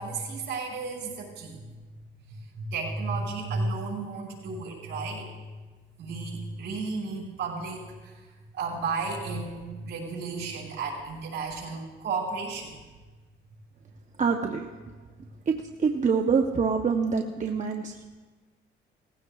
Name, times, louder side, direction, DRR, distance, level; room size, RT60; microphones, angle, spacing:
voice 1, 0.0-1.6 2.3-5.5 6.0-8.2 8.6-12.8, right 3 dB, 65° right, -3 dB, 5.1 m, -33 dB
voice 2, 14.2-14.7 15.5-18.0, right 5 dB, 40° right, 3 dB, 0.8 m, -25 dB
19.0 x 16.0 x 2.4 m, 1.3 s
cardioid pair, 90°, 20 cm